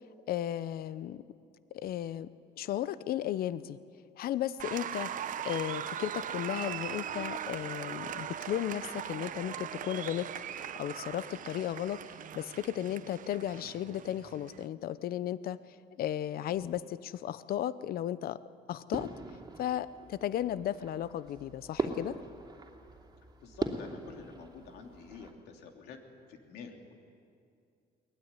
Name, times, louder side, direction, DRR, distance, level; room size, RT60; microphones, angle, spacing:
voice 1, 0.3-1.2 1.7-2.3 2.6-3.8 4.2-15.6 16.0-18.4 18.7-19.1 19.6-22.2, left 11 dB, 60° left, 16 dB, 0.8 m, -35 dB
Applause, 4.6-14.7, right 9 dB, 50° right, 0.9 m, -40 dB
sound 1, 18.9-25.3, right 3 dB, 25° right, 2.8 m, -40 dB
voice 2, 23.4-26.0 26.3-26.9, left 5 dB, 80° left, 3 dB, 3.2 m, -48 dB
23.0 x 19.5 x 9.8 m, 2.4 s
cardioid pair, 110°, 17 cm